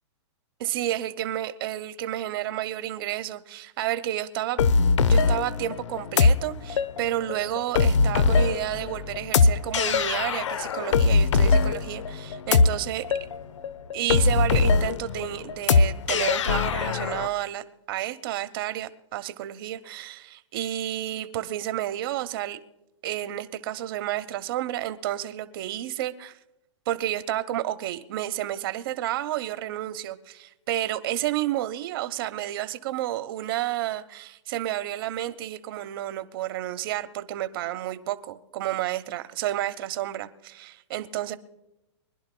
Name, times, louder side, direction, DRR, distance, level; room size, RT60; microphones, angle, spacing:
voice 1, 0.6-4.6 5.0-13.3 13.9-22.6 23.0-26.4 26.9-41.4, right 13 dB, 50° right, 1.0 m, -31 dB
sound 1, 4.6-17.3, left 4 dB, 85° left, 0.7 m, -22 dB
25.0 x 11.0 x 2.3 m
hypercardioid pair, 150°, 15 cm